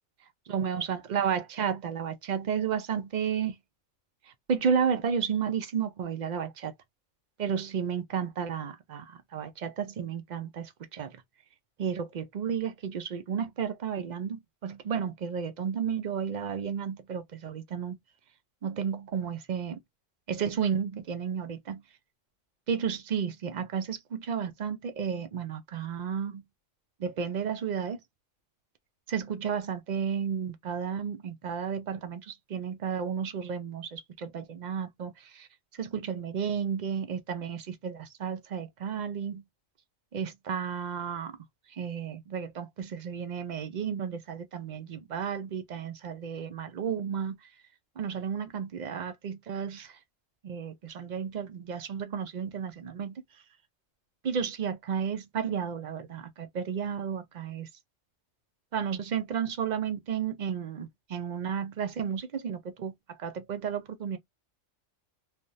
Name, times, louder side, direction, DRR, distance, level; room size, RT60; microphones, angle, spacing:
voice 1, 0.5-3.6 4.3-6.7 7.4-11.2 11.8-18.0 18.6-19.8 20.3-21.8 22.7-26.4 27.0-28.0 29.1-35.5 35.8-39.4 40.1-41.4 41.7-47.4 48.0-50.0 50.4-53.2 54.2-57.7 58.7-62.9 63.2-64.2, right 7 dB, 60° right, 0.5 m, -32 dB
3.4 x 2.2 x 2.6 m
omnidirectional pair, 1.3 m